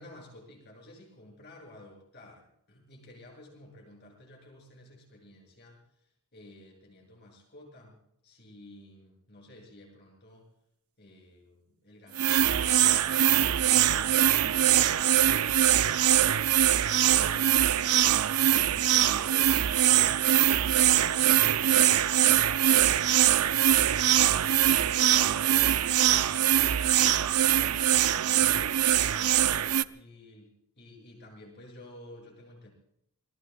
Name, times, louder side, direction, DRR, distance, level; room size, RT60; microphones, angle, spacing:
voice 1, 0.0-10.5 11.0-16.4 17.0-17.7 18.0-20.1 20.8-21.9 22.6-27.3 27.8-32.7, left 1 dB, 50° left, -1 dB, 7.7 m, -52 dB
sound 1, 12.2-29.8, right 11 dB, 80° right, 0.6 m, -23 dB
28.0 x 21.0 x 2.4 m, 0.76 s
head